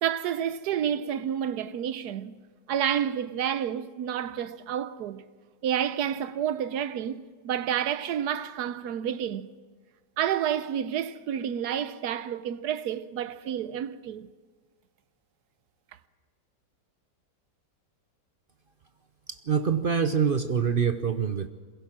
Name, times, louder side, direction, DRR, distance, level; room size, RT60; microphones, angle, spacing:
voice 1, 0.0-2.4 2.7-5.2 5.6-9.5 10.2-14.3, right 9 dB, 70° right, 1.2 m, -29 dB
voice 2, 19.3-21.5, right 7 dB, 55° right, 0.6 m, -25 dB
22.5 x 16.0 x 7.4 m
omnidirectional pair, 1.8 m